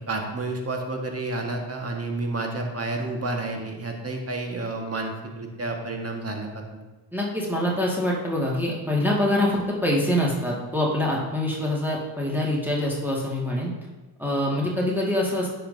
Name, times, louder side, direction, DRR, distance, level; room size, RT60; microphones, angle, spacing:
voice 1, 0.1-6.8, right 2 dB, 30° right, 2 dB, 1.6 m, -30 dB
voice 2, 7.1-13.7 14.2-15.5, left 1 dB, 5° right, -5 dB, 2.0 m, -25 dB
9.9 x 5.7 x 2.8 m, 1.2 s
hypercardioid pair, 50°, 49 cm